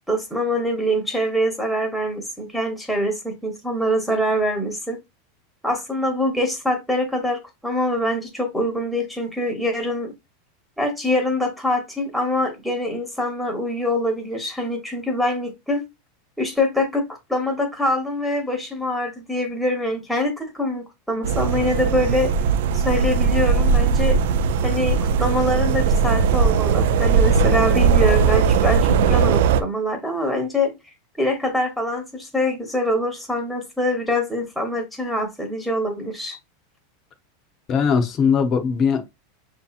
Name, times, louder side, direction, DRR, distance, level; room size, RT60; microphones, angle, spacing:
voice 1, 0.1-5.0 5.6-10.1 10.8-15.8 16.4-17.0 17.3-22.3 22.7-24.2 24.6-30.7 31.2-36.4, left 1 dB, ahead, 1.0 m, -24 dB
sound 1, 21.2-29.6, right 6 dB, 70° right, 0.4 m, -19 dB
voice 2, 37.7-39.1, left 6 dB, 30° left, 0.7 m, -20 dB
6.4 x 2.8 x 2.4 m
supercardioid pair, 145°, 0 cm